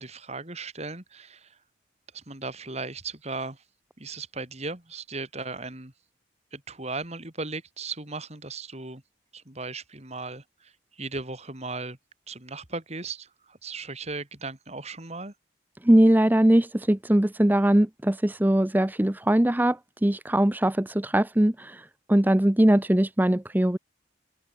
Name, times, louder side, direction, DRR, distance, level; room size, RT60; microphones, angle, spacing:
voice 1, 0.0-1.6 2.1-3.6 4.0-5.9 6.5-9.0 9.3-12.0 12.3-15.3, right 3 dB, 35° right, 3.3 m, -37 dB
voice 2, 15.8-23.8, right 1 dB, 10° right, 0.5 m, -21 dB
head